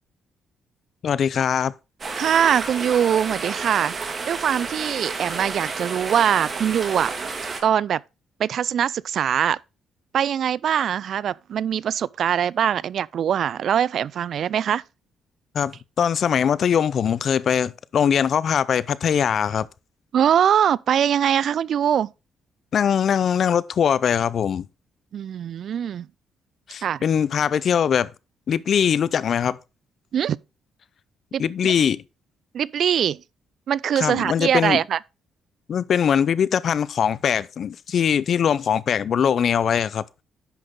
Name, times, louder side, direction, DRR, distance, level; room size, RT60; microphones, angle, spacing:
voice 1, 1.0-1.7 15.5-19.7 22.7-24.6 26.7-28.1 28.5-29.6 31.4-32.0 34.0-34.8 35.7-40.0, left 8 dB, 55° left, 0.6 m, -21 dB
sound 1, 2.0-7.6, right 4 dB, 40° right, 2.2 m, -31 dB
voice 2, 2.2-7.1 7.6-8.0 8.4-9.6 10.1-14.8 20.1-22.1 25.1-26.1 26.8-27.0 30.1-30.4 31.3-31.7 32.5-33.2 33.7-35.0, right 9 dB, 60° right, 0.3 m, -22 dB
10.0 x 5.9 x 3.7 m
cardioid pair, 90°, 0 cm